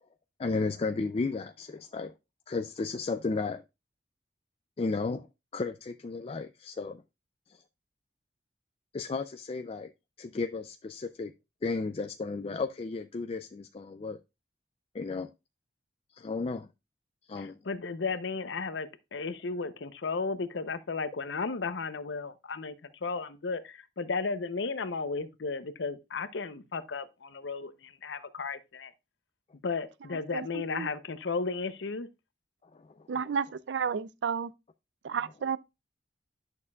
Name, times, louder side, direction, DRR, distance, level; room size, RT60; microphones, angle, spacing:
voice 1, 0.4-2.1 2.5-3.6 4.8-5.3 5.5-7.0 8.9-9.9 10.2-11.3 11.6-14.2 14.9-15.3 16.2-16.7 17.3-17.6 32.7-32.9, left 3 dB, 35° left, 0.4 m, -33 dB
voice 2, 17.4-22.8 23.0-28.9 29.6-32.1, left 4 dB, 90° left, 0.7 m, -34 dB
voice 3, 33.1-34.5 35.0-35.6, right 6 dB, 80° right, 0.4 m, -31 dB
11.0 x 6.6 x 2.3 m
head